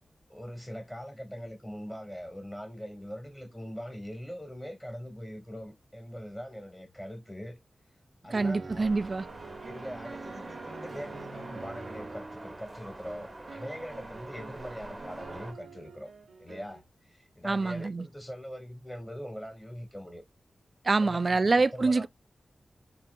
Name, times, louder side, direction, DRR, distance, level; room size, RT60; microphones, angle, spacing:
voice 1, 0.3-7.6 8.2-8.9 9.6-16.1 16.4-16.8 17.4-20.2 21.0-21.4 21.7-22.1, equal, 10° left, 2.0 m, -42 dB
voice 2, 8.3-9.3 17.4-18.1 20.8-22.1, right 3 dB, 50° right, 0.3 m, -26 dB
sound 1, 8.3-16.8, right 4 dB, 85° right, 0.8 m, -46 dB
sound 2, 8.8-15.5, right 1 dB, 25° right, 1.0 m, -45 dB
3.5 x 2.9 x 2.3 m
cardioid pair, 50°, 0 cm